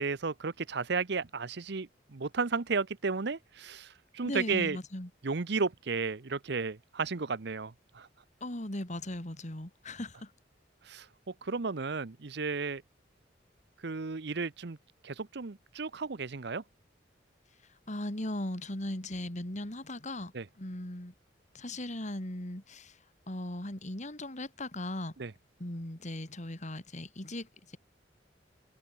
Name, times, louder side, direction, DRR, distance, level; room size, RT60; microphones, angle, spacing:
voice 1, 0.0-4.8 5.2-8.1 10.8-12.8 13.8-14.8 15.0-16.6 20.3-20.5 25.2-25.3, right 4 dB, 65° right, 0.8 m, -33 dB
voice 2, 4.2-5.1 8.4-10.3 17.7-20.3 20.6-21.1 21.5-23.0 23.3-25.1 25.6-27.8, left 1 dB, 40° left, 3.1 m, -38 dB
head